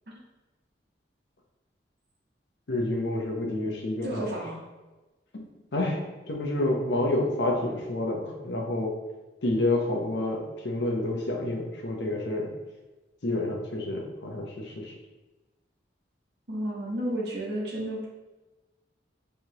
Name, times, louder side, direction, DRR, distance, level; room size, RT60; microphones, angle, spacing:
voice 1, 2.7-4.2 5.3-5.4 5.7-9.0 9.4-12.5 13.2-14.9, left 1 dB, 80° left, 0 dB, 0.8 m, -29 dB
voice 2, 4.0-4.6 16.5-18.1, right 1 dB, 65° right, -4 dB, 1.1 m, -32 dB
4.7 x 3.3 x 2.9 m, 1.2 s
head